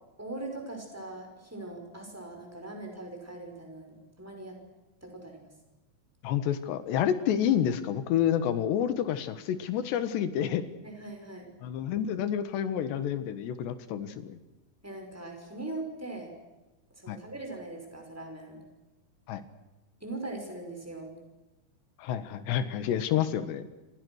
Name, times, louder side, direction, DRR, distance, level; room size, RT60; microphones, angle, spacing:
voice 1, 0.2-4.6 5.0-5.4 10.8-11.5 14.8-16.3 17.0-18.6 20.0-21.2, right 2 dB, 5° right, 3 dB, 5.4 m, -41 dB
voice 2, 6.2-10.6 11.6-14.4 17.1-17.2 19.3-19.4 22.0-23.6, left 9 dB, 70° left, 12 dB, 3.4 m, -29 dB
28.0 x 26.5 x 6.5 m, 1.1 s
omnidirectional pair, 5.5 m